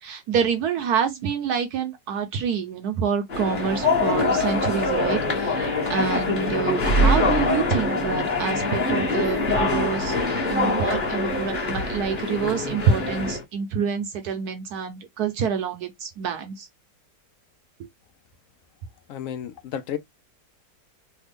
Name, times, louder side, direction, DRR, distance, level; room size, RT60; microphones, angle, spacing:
voice 1, 0.0-10.2 10.5-16.7, right 6 dB, 70° right, 1.0 m, -27 dB
sound 1, 3.3-13.4, left 2 dB, 35° left, 1.1 m, -24 dB
voice 2, 19.1-20.0, left 9 dB, 75° left, 0.7 m, -32 dB
3.3 x 2.2 x 3.4 m
omnidirectional pair, 1.9 m